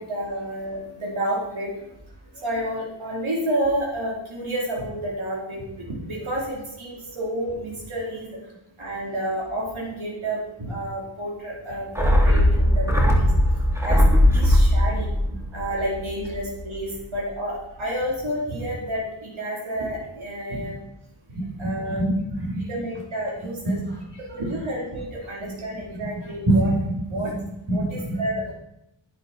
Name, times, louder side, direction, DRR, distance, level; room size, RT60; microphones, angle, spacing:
voice 1, 0.0-1.7 2.4-8.4 8.8-13.3 13.8-15.1 15.5-20.8 21.6-22.0 22.7-23.8 24.3-26.7 27.1-27.3 27.7-28.6, right 1 dB, 85° right, -5 dB, 4.5 m, -30 dB
sound 1, 12.0-16.6 16.8-16.9, left 1 dB, 5° right, 2.8 m, -19 dB
voice 2, 21.3-22.6 23.4-24.2 25.9-28.2, right 1 dB, 60° right, -1 dB, 4.8 m, -26 dB
12.0 x 11.0 x 4.6 m, 0.82 s
wide cardioid pair, 95°, 46 cm